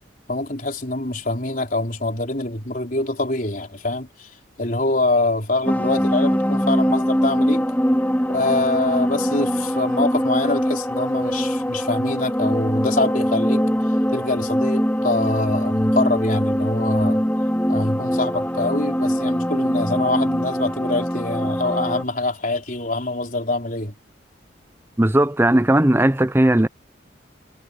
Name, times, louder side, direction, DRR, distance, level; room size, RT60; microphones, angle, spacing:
voice 1, 0.3-4.3 4.6-7.7 8.3-13.6 14.1-17.2 17.7-23.9, left 2 dB, 45° left, 4.2 m, -24 dB
sound 1, 5.6-22.0, equal, 10° left, 2.9 m, -22 dB
voice 2, 25.0-26.7, right 1 dB, 10° right, 0.6 m, -17 dB
head